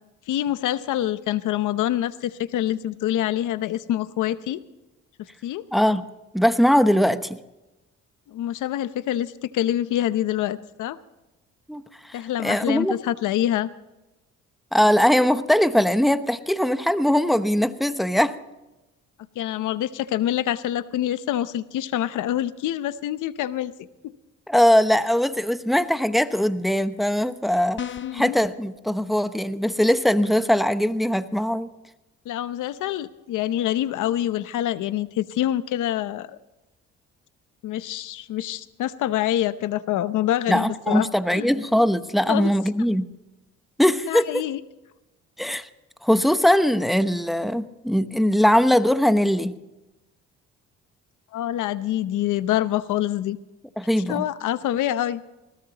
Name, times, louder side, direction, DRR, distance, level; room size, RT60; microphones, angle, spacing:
voice 1, 0.3-4.6 5.4-5.6 8.3-11.0 12.1-13.7 19.4-23.7 24.0-24.1 28.0-28.4 32.3-36.4 37.6-41.5 42.3-42.5 44.0-44.6 51.3-53.4 54.1-55.2, left 12 dB, 85° left, 14 dB, 0.8 m, -26 dB
voice 2, 5.7-6.0 6.3-7.4 11.7-13.0 14.7-18.3 24.5-27.8 28.1-31.7 40.5-43.1 43.8-44.4 45.4-45.7 46.0-49.5 53.8-54.2, equal, ahead, 11 dB, 0.9 m, -21 dB
sound 1, 27.8-28.3, left 8 dB, 40° left, 0.6 m, -33 dB
20.5 x 17.5 x 3.0 m, 1.0 s
cardioid pair, 90°, 30 cm